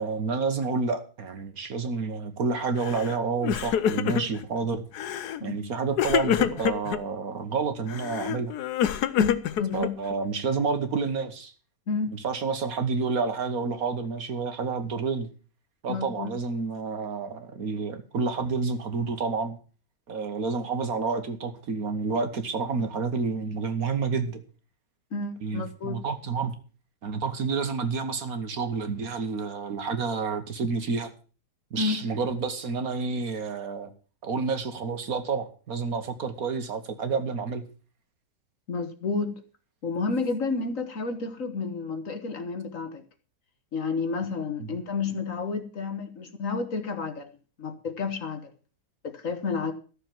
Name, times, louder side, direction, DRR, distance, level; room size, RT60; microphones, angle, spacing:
voice 1, 0.0-4.8 5.4-8.5 9.7-11.5 12.1-15.3 15.8-19.6 20.1-24.4 25.4-26.5 27.0-31.1 31.7-33.9 34.2-37.6 44.6-44.7, right 4 dB, 60° right, 1.7 m, -29 dB
Crying sobbing, 2.8-3.1 3.4-4.4 4.9-5.4 6.0-7.0 7.9-10.1, left 9 dB, 75° left, 1.3 m, -27 dB
voice 2, 9.2-9.9 11.9-12.2 15.9-16.3 25.1-26.0 31.8-32.0 38.7-39.4 39.8-43.0 43.7-47.3 47.6-48.5 49.0-49.7, left 4 dB, 55° left, 1.7 m, -30 dB
13.5 x 6.9 x 7.4 m
omnidirectional pair, 1.8 m